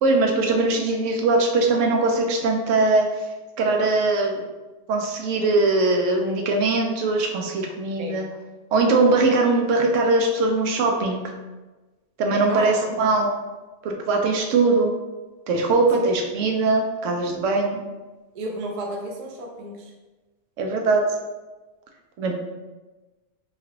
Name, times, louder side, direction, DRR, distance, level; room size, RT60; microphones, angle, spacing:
voice 1, 0.0-3.1 3.6-4.4 4.9-8.2 8.7-11.2 12.2-13.3 13.8-14.9 15.5-17.8 20.6-21.0 22.2-22.3, right 3 dB, 85° right, 2 dB, 0.9 m, -21 dB
voice 2, 12.5-12.9 16.0-16.1 18.3-19.9, right 1 dB, 60° right, 1 dB, 0.4 m, -33 dB
3.1 x 2.4 x 2.8 m, 1.2 s
omnidirectional pair, 1.2 m